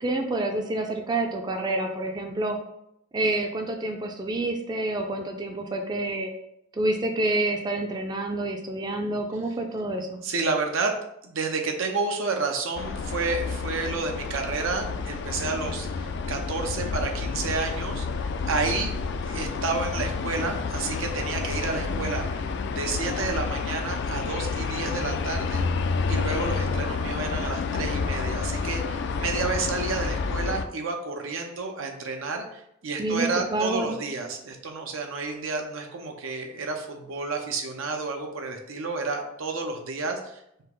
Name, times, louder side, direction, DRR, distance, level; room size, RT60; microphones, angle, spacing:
voice 1, 0.0-2.6 3.1-6.3 6.7-10.2 33.0-33.9, right 2 dB, 20° right, 3 dB, 0.4 m, -28 dB
voice 2, 10.2-10.9 11.2-18.9 19.2-25.7 26.1-40.6, right 3 dB, 90° right, 3 dB, 0.7 m, -30 dB
sound 1, 12.8-30.6, left 4 dB, 60° left, 0.3 m, -29 dB
5.3 x 2.0 x 3.7 m, 0.78 s
head